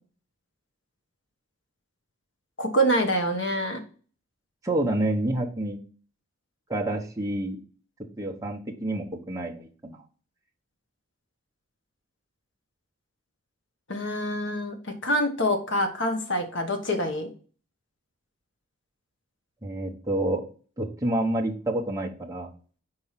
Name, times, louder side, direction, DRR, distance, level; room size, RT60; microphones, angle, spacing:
voice 1, 2.6-3.8 13.9-17.3, equal, 55° left, 6 dB, 1.2 m, -26 dB
voice 2, 4.6-5.8 6.7-7.6 8.2-10.0 19.6-20.4 20.8-22.5, right 1 dB, 15° right, 0 dB, 0.9 m, -28 dB
4.9 x 4.5 x 5.7 m, 0.41 s
head